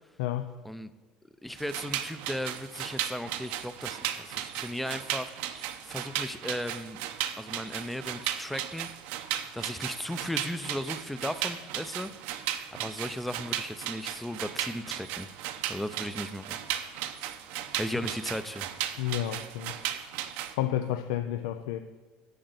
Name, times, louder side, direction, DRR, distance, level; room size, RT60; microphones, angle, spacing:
voice 1, 0.2-0.5 19.0-19.8 20.6-21.8, left 12 dB, 85° left, 0.5 m, -31 dB
voice 2, 1.4-7.0 7.4-8.9 9.5-12.1 12.7-15.3 15.7-16.6 17.8-18.7, left 1 dB, 5° left, 0.5 m, -36 dB
sound 1, 1.6-20.5, right 11 dB, 70° right, 0.7 m, -36 dB
8.0 x 6.5 x 8.0 m
supercardioid pair, 125°, 3 cm